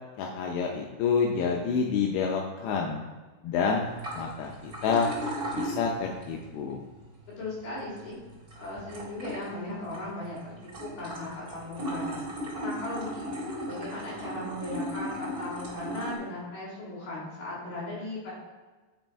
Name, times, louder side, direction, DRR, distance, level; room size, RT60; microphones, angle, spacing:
voice 1, 0.2-3.0 3.4-5.1 5.5-6.8, left 5 dB, 85° left, 1 dB, 2.4 m, -28 dB
sound 1, 3.8-16.1, equal, 75° right, 0.8 m, -38 dB
voice 2, 7.3-8.2 8.6-10.5 10.8-12.2 12.6-18.3, left 2 dB, 55° left, -6 dB, 4.7 m, -37 dB
9.4 x 5.3 x 4.6 m, 1.3 s
omnidirectional pair, 5.8 m